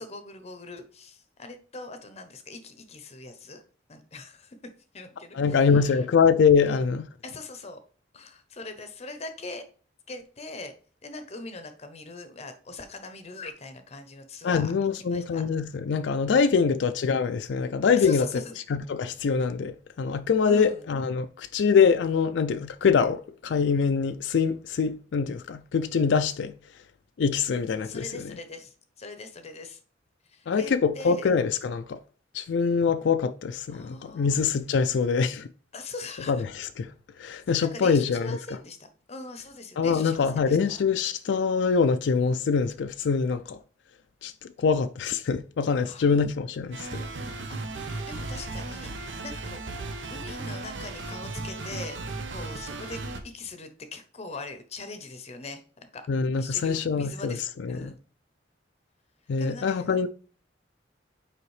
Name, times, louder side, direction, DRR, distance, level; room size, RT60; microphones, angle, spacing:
voice 1, 0.0-3.6 3.9-4.6 4.9-6.1 6.6-6.8 7.2-7.8 8.1-9.6 10.1-10.7 11.0-15.4 16.5-16.7 18.0-18.6 20.4-20.8 27.8-29.8 30.2-31.4 33.7-34.4 35.7-36.4 37.6-40.8 45.8-46.2 47.5-56.0 56.4-57.4 57.7-58.0 59.4-60.1, left 3 dB, 35° left, 0.7 m, -41 dB
voice 2, 5.3-7.1 14.4-18.2 18.7-26.5 27.2-28.1 30.5-32.0 32.3-35.5 36.3-36.9 37.2-38.4 39.8-43.6 44.2-44.3 44.6-47.0 56.1-57.4 57.6-57.9 59.3-60.1, left 5 dB, 70° left, 0.4 m, -24 dB
sound 1, 46.7-53.2, right 2 dB, 80° right, 0.9 m, -36 dB
7.0 x 4.8 x 3.2 m
head